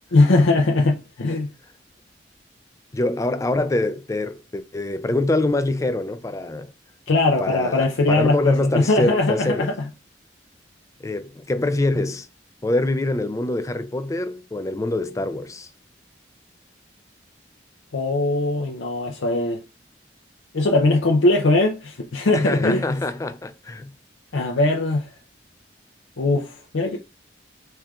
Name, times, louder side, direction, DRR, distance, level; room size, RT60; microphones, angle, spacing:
voice 1, 0.1-1.5 7.1-9.9 17.9-19.6 20.5-23.0 24.3-25.1 26.2-27.0, left 2 dB, 85° left, 0.6 m, -20 dB
voice 2, 2.9-6.7 7.4-9.7 11.0-12.3 12.6-15.7 22.3-23.9, left 2 dB, 15° left, 0.3 m, -24 dB
4.4 x 3.4 x 2.4 m
head